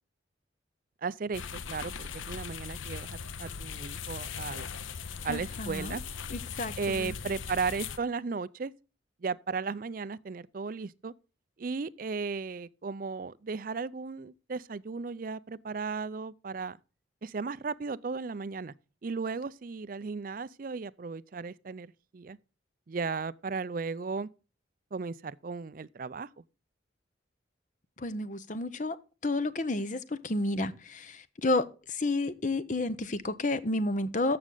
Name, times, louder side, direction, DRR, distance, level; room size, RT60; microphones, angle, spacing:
voice 1, 1.0-4.7 5.2-6.0 6.8-8.7 9.2-11.1 11.6-16.8 17.2-18.7 19.0-22.4 22.9-24.3 24.9-26.3, right 4 dB, 45° right, 0.4 m, -35 dB
sound 1, 1.3-8.0, left 6 dB, 85° left, 0.7 m, -39 dB
voice 2, 5.3-5.9 6.3-7.1 28.0-29.0 29.2-34.4, left 2 dB, 40° left, 0.8 m, -31 dB
14.0 x 6.1 x 3.9 m
head